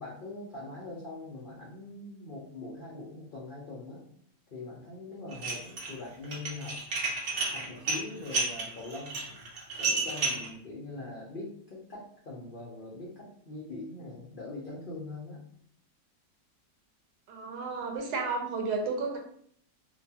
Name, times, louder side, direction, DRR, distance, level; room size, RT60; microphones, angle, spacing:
voice 1, 0.0-4.1 4.5-6.8 7.5-9.2 9.8-15.4, left 2 dB, 70° left, -5 dB, 0.5 m, -42 dB
Dishes pots and pans, 5.3-5.9 6.2-10.5, right 3 dB, 55° right, 0.9 m, -31 dB
voice 2, 17.3-19.2, right 4 dB, 70° right, 1 dB, 1.2 m, -32 dB
2.9 x 2.2 x 2.7 m, 0.64 s
omnidirectional pair, 1.8 m